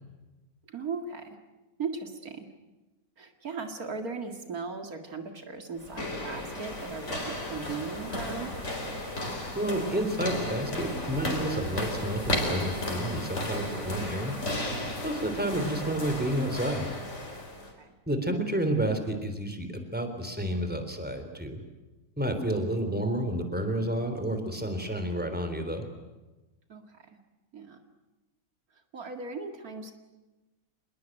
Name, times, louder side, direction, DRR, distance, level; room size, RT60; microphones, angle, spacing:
voice 1, 0.7-1.4 1.8-2.5 3.2-8.5 14.9-15.3 17.5-17.9 26.7-27.2 27.5-27.8 28.9-29.9, right 4 dB, 80° right, 5 dB, 2.6 m, -38 dB
sound 1, 5.8-17.7, left 1 dB, 50° left, 4.8 m, -34 dB
voice 2, 9.6-14.3 15.0-16.8 18.1-21.6 22.2-25.8, right 1 dB, 5° right, 7 dB, 3.6 m, -30 dB
26.5 x 21.0 x 9.1 m, 1.1 s
omnidirectional pair, 1.5 m